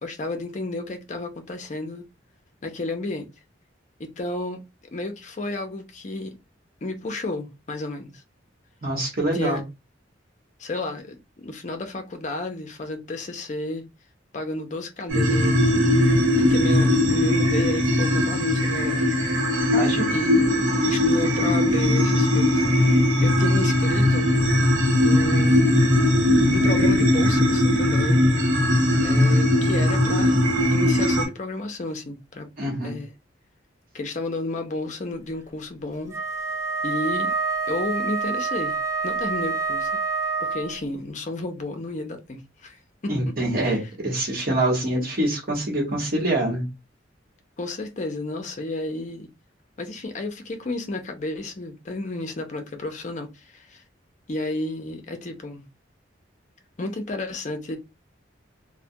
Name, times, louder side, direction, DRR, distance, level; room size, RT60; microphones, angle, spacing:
voice 1, 0.0-2.0 2.6-3.3 4.0-4.6 4.9-6.3 6.8-8.2 9.3-9.6 10.6-13.9 14.3-15.7 16.5-19.2 20.1-20.4 20.9-22.7 23.2-24.3 25.0-25.7 26.5-28.3 29.0-30.4 30.7-33.1 33.9-36.1 36.8-37.3 37.7-38.8 39.0-39.9 40.4-42.8 43.6-43.8 47.6-49.3 49.8-53.8 54.3-55.7 56.8-57.8, left 2 dB, 40° left, 0.5 m, -32 dB
voice 2, 8.8-9.6 19.6-20.2 32.6-33.0 43.1-46.7, right 1 dB, 50° right, 1.0 m, -25 dB
sound 1, 15.1-31.3, left 1 dB, 85° right, 0.9 m, -19 dB
Wind instrument woodwind instrument, 36.1-40.8, right 4 dB, 15° right, 0.3 m, -27 dB
2.2 x 2.1 x 2.7 m
head